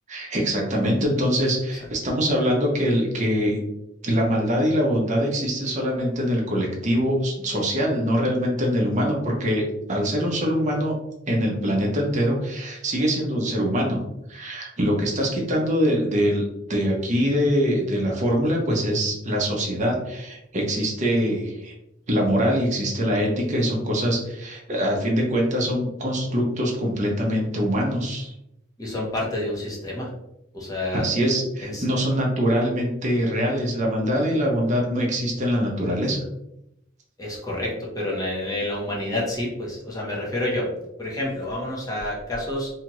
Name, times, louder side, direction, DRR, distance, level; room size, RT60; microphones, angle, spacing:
voice 1, 0.1-3.6 4.0-9.6 9.9-10.9 11.3-14.0 14.3-16.4 16.7-21.7 22.1-28.3 30.9-36.2, equal, 40° right, -1 dB, 0.7 m, -23 dB
voice 2, 28.8-30.1 30.5-31.1 31.6-31.8 37.2-40.7 41.0-42.7, left 1 dB, 20° left, -4 dB, 0.8 m, -28 dB
2.8 x 2.4 x 3.0 m, 0.84 s
head